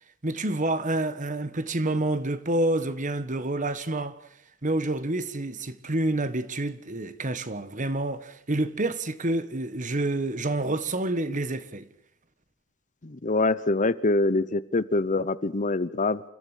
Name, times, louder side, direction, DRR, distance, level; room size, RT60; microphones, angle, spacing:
voice 1, 0.2-4.2 4.6-11.9, right 2 dB, 40° right, 1.5 m, -28 dB
voice 2, 13.0-16.2, left 2 dB, 40° left, 0.8 m, -25 dB
29.0 x 14.5 x 8.2 m
head